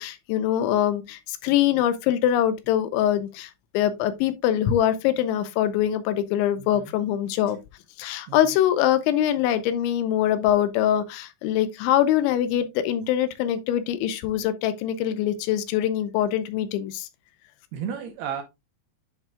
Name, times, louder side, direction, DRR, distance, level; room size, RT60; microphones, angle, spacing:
voice 1, 0.0-7.6 8.0-17.1, left 11 dB, 85° left, 3.0 m, -23 dB
voice 2, 6.6-6.9 8.3-8.4 17.7-18.4, right 8 dB, 75° right, 2.4 m, -33 dB
10.5 x 5.5 x 2.3 m
omnidirectional pair, 5.4 m